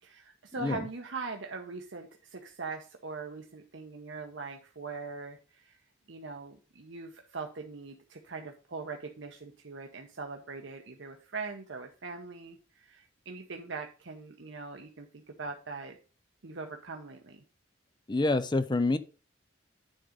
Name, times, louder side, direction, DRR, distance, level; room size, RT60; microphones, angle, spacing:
voice 1, 0.0-5.8 6.1-16.0 16.4-17.4, right 4 dB, 75° right, 0.9 m, -41 dB
voice 2, 18.1-19.0, left 2 dB, 25° left, 0.5 m, -27 dB
9.9 x 3.8 x 5.0 m
head